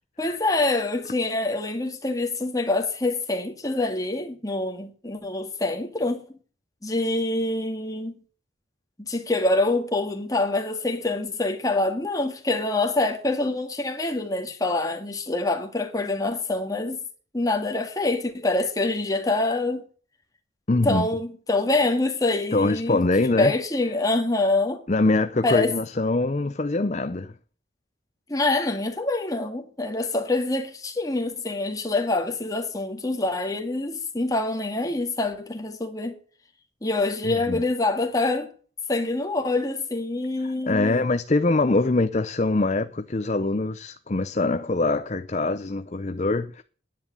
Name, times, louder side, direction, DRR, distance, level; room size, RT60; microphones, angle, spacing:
voice 1, 0.2-6.3 6.8-8.1 9.0-17.0 17.3-19.8 20.8-23.0 23.4-24.8 25.4-25.7 28.3-36.2 36.8-38.5 38.9-41.0, left 2 dB, 20° left, 2.0 m, -25 dB
voice 2, 20.7-21.1 22.5-23.5 24.9-27.3 37.2-37.6 40.7-46.6, left 2 dB, 35° left, 0.6 m, -23 dB
10.5 x 10.5 x 6.8 m
head